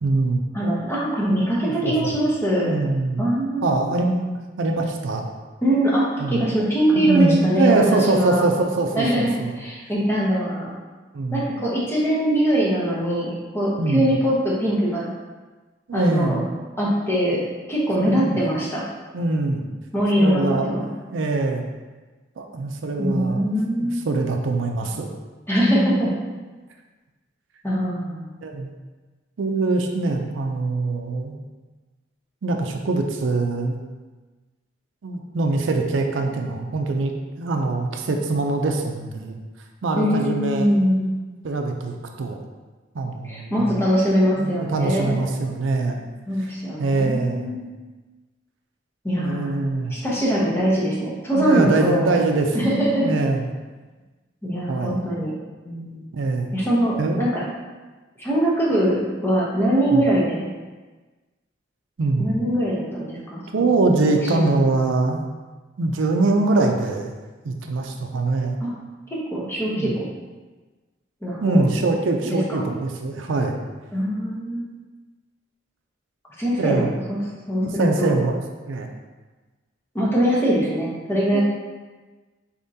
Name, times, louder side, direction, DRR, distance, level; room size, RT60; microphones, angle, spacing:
voice 1, 0.0-0.4 1.8-2.1 2.6-3.2 3.6-5.2 6.2-6.4 7.0-9.5 11.1-11.5 13.8-14.1 15.9-16.4 18.0-18.4 19.1-19.6 20.2-21.7 22.4-23.5 23.8-25.1 28.4-28.7 29.4-31.4 32.4-33.8 35.0-37.1 37.4-39.4 39.8-40.7 41.4-42.4 42.9-43.7 44.4-46.0 46.8-47.6 49.1-50.0 51.3-52.7 53.0-53.4 54.7-55.0 56.1-56.5 57.0-57.3 59.9-60.0 62.0-62.4 63.5-65.3 65.8-67.1 67.4-68.6 69.7-69.9 71.4-73.6 76.6-76.9 77.6-78.4 78.7-78.9 81.3-81.4, right 3 dB, 85° right, 3 dB, 0.5 m, -23 dB
voice 2, 0.5-2.7 3.2-3.7 5.6-8.5 8.9-10.8 11.3-15.1 15.9-16.4 16.8-17.4 17.7-18.8 19.9-20.8 23.0-24.0 25.5-26.1 27.6-28.3 40.0-41.1 43.2-45.2 46.3-47.7 49.0-49.5 49.9-52.2 52.5-53.1 54.4-56.1 56.5-57.4 58.2-60.5 62.2-63.7 64.2-64.6 68.6-68.7 69.1-70.0 71.2-71.7 72.3-72.7 73.9-74.6 76.4-77.2 77.5-78.2 79.9-81.4, equal, 15° left, -6 dB, 0.8 m, -22 dB
4.2 x 3.6 x 2.7 m, 1.3 s
head